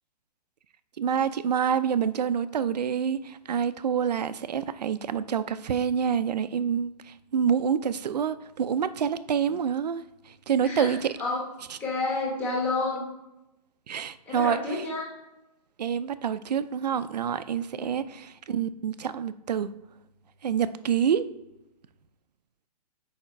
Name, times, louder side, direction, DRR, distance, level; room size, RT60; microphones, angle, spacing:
voice 1, 1.0-11.1 13.9-14.9 15.8-19.7 20.4-21.3, right 8 dB, 80° right, 14 dB, 0.6 m, -27 dB
voice 2, 10.6-11.4 11.8-13.0 14.3-15.0 17.8-17.9, left 3 dB, 10° left, -4 dB, 1.2 m, -30 dB
7.3 x 5.0 x 4.5 m, 0.91 s
hypercardioid pair, 175°, 21 cm